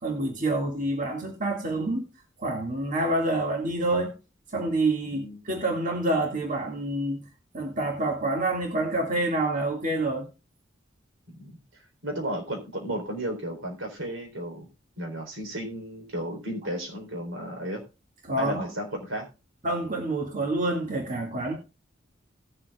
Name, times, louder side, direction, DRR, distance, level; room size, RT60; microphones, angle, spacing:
voice 1, 0.0-2.1 2.4-4.1 4.5-7.2 7.5-10.3 18.2-18.6 19.6-21.5, right 2 dB, 40° right, 2.0 m, -27 dB
voice 2, 5.1-5.8 11.3-11.5 12.0-14.7 15.0-17.8 18.4-19.3, right 1 dB, 85° right, 3.7 m, -34 dB
18.5 x 7.5 x 2.4 m
head